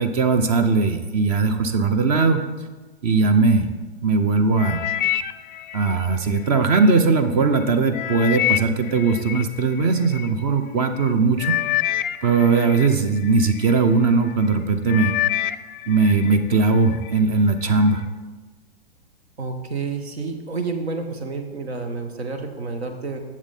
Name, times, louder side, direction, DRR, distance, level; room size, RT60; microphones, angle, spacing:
voice 1, 0.0-2.4 3.0-3.7 4.0-4.8 5.7-11.5 12.2-15.1 15.9-18.0, right 4 dB, 35° right, 8 dB, 0.7 m, -19 dB
sound 1, 4.6-6.9 7.4-10.3 11.0-11.1 11.4-13.8 14.3-14.6 14.9-16.4 16.8-17.2 17.8-17.9, left 13 dB, 50° left, 0.5 m, -27 dB
voice 2, 19.4-23.2, right 4 dB, 70° right, 6 dB, 1.4 m, -29 dB
10.5 x 7.3 x 4.2 m, 1.2 s
figure-of-eight pair, 105°, 33 cm